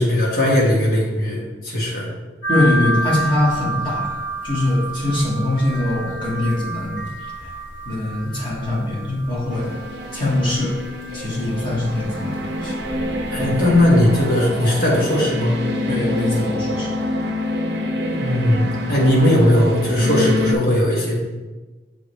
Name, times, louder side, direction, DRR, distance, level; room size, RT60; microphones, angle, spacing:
voice 1, 0.0-2.1 13.3-15.5 18.0-21.2, left 1 dB, 50° left, -4 dB, 1.5 m, -18 dB
sound 1, 2.4-14.3, right 1 dB, 90° left, 1.7 m, -30 dB
voice 2, 2.5-4.1 4.4-7.1 7.4-7.5 7.8-9.7 10.1-10.7 11.1-12.8 13.4-13.5 15.9-16.9, left 1 dB, 25° left, -6 dB, 1.5 m, -22 dB
sound 2, 9.5-20.5, left 1 dB, 70° right, 0.7 m, -26 dB
6.1 x 4.9 x 3.1 m, 1.2 s
head